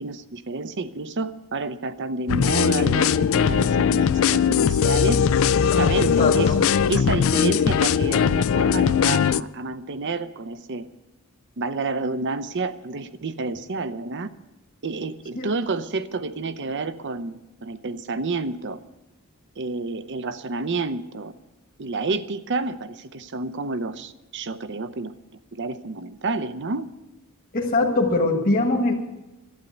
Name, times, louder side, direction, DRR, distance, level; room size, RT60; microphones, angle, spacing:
voice 1, 0.0-5.2 5.6-6.5 6.9-10.9 11.6-14.3 14.8-18.8 19.6-21.3 21.8-25.1 25.5-26.9, right 3 dB, 55° right, 12 dB, 0.7 m, -29 dB
sound 1, 2.3-9.4, left 7 dB, 65° left, 0.4 m, -20 dB
voice 2, 6.0-6.6 15.3-15.5 27.5-28.9, left 2 dB, 40° left, 0 dB, 1.6 m, -22 dB
12.0 x 9.1 x 9.5 m, 1.0 s
head